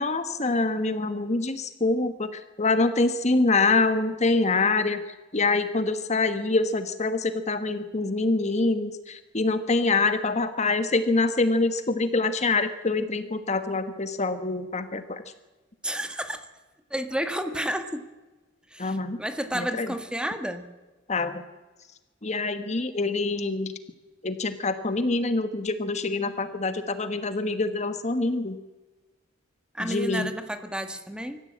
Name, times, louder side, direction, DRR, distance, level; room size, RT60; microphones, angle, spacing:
voice 1, 0.0-5.0 5.3-15.2 18.8-19.2 19.5-19.9 21.1-21.4 22.2-23.7 24.2-28.6 29.8-30.3, left 3 dB, 35° left, 10 dB, 1.3 m, -25 dB
voice 2, 15.8-16.5 16.9-18.0 18.7-20.7 29.7-31.4, equal, 5° right, 8 dB, 1.6 m, -31 dB
25.0 x 14.5 x 8.7 m, 1.2 s
head